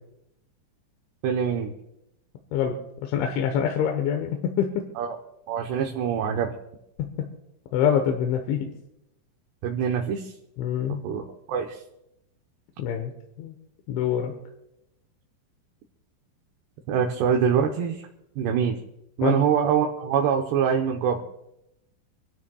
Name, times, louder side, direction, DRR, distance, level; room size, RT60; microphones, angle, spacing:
voice 1, 1.2-1.7 5.0-5.2 5.5-6.5 9.6-10.3 11.0-11.8 16.9-18.0 18.4-18.8 19.2-21.2, right 7 dB, 75° right, 1 dB, 2.9 m, -24 dB
voice 2, 2.5-4.9 7.0-7.3 7.7-8.7 10.6-11.0 12.8-13.1 13.4-13.6 13.9-14.3 19.2-19.4, left 8 dB, 85° left, 4 dB, 3.5 m, -25 dB
27.5 x 13.0 x 2.3 m, 0.83 s
omnidirectional pair, 5.3 m